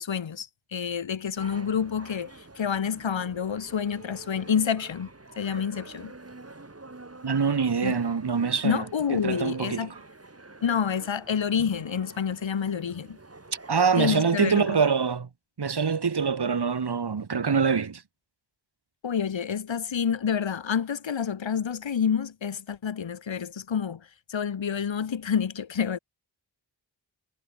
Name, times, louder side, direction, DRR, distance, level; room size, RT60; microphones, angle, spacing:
voice 1, 0.0-5.1 5.4-6.1 7.8-8.0 8.6-9.9 10.6-13.2 14.0-14.8 19.0-26.0, left 7 dB, 80° left, 2.3 m, -28 dB
hindu temple garden mantra loop, 1.4-15.1, right 2 dB, 30° right, 6.1 m, -47 dB
voice 2, 7.2-8.8 9.1-10.0 13.7-15.3 15.6-18.0, right 5 dB, 60° right, 2.8 m, -24 dB
cardioid pair, 50°, 45 cm